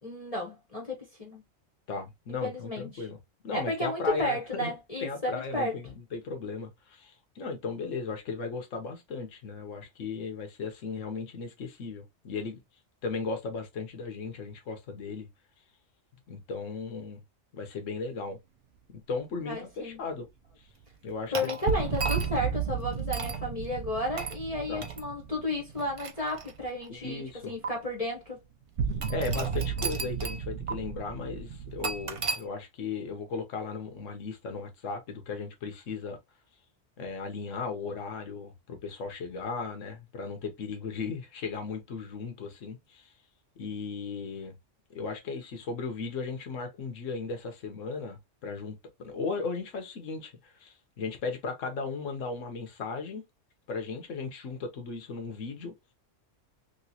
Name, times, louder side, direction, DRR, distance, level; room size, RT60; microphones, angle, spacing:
voice 1, 0.0-1.4 2.4-3.1 3.5-5.7 19.4-20.0 21.3-28.4, left 1 dB, 30° left, 1.1 m, -33 dB
voice 2, 1.9-3.2 3.4-4.7 5.0-12.6 13.0-15.3 16.3-17.2 17.5-18.4 18.9-20.3 20.6-20.7 21.0-21.3 24.7-24.9 26.9-27.5 29.1-36.2 37.0-43.1 43.6-44.6 44.9-53.2 53.7-55.7, left 4 dB, 75° left, 1.3 m, -36 dB
sound 1, 21.3-22.5 23.1-23.4 24.2-24.4 24.8-25.0 25.7-26.9 27.6-27.7 29.0-30.4 30.7-30.8 31.8-32.4, right 4 dB, 45° right, 0.4 m, -35 dB
sound 2, 21.7-26.8 27.0-27.1 28.8-32.3, right 7 dB, 65° right, 0.8 m, -34 dB
3.1 x 3.1 x 2.7 m
omnidirectional pair, 1.3 m